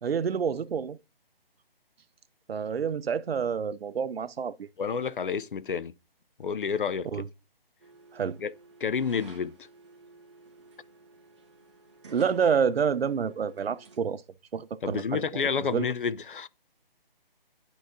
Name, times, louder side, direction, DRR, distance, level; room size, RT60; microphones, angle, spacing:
voice 1, 0.0-1.0 2.5-4.7 7.1-7.3 8.1-8.4 12.1-14.2 14.5-15.4 15.7-15.9, right 6 dB, 80° right, 0.6 m, -28 dB
voice 2, 4.8-5.9 6.4-7.2 8.4-8.5 8.8-9.6 14.8-16.5, left 6 dB, 60° left, 0.5 m, -29 dB
sound 1, 7.8-14.0, right 3 dB, 30° right, 1.2 m, -52 dB
11.5 x 4.0 x 2.6 m
hypercardioid pair, 170°, 30 cm